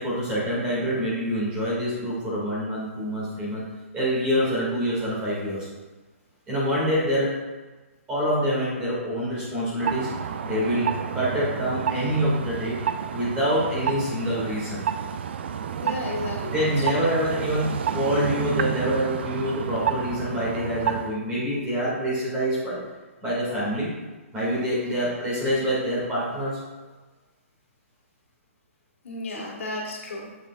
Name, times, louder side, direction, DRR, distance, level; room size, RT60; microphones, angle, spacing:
voice 1, 0.0-3.6 3.9-5.7 6.5-7.3 8.1-10.1 10.4-12.7 13.1-14.8 16.5-22.8 23.2-23.9 24.3-26.6 29.3-29.4, equal, 15° right, -8 dB, 2.2 m, -26 dB
sound 1, 9.8-21.2, right 8 dB, 50° right, 0.4 m, -30 dB
voice 2, 15.8-16.8 24.8-24.9 29.0-30.3, left 2 dB, 65° left, -2 dB, 1.9 m, -33 dB
7.6 x 7.2 x 2.5 m, 1.2 s
hypercardioid pair, 165°, 8 cm